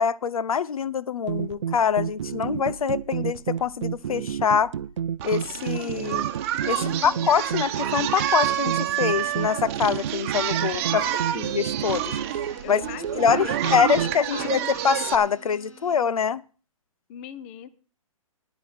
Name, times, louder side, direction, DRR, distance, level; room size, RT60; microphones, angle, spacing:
voice 1, 0.0-4.7 5.2-6.3 6.7-11.0 11.3-12.2 12.7-12.8 13.2-16.4, left 7 dB, 85° left, 0.7 m, -24 dB
sound 1, 1.3-14.2, right 8 dB, 60° right, 0.5 m, -31 dB
Singing, 5.2-15.1, right 12 dB, 25° right, 1.0 m, -29 dB
voice 2, 6.8-7.2 10.8-11.1 12.6-14.7 17.1-17.7, left 10 dB, 20° left, 0.5 m, -39 dB
sound 2, 8.9-16.0, right 3 dB, 65° left, 3.6 m, -50 dB
9.9 x 9.7 x 6.4 m
hypercardioid pair, 165°, 18 cm